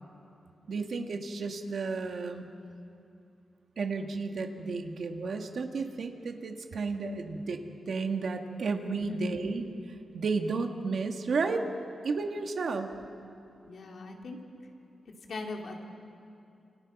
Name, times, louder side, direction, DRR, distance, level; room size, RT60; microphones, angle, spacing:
voice 1, 0.7-2.5 3.8-7.6 7.9-9.7 10.1-11.7 12.0-12.9, right 4 dB, 55° right, 4 dB, 1.8 m, -32 dB
voice 2, 13.6-14.4 15.3-15.8, left 3 dB, 55° left, 1 dB, 2.7 m, -40 dB
30.0 x 28.0 x 6.0 m, 2.7 s
wide cardioid pair, 160°, 0 cm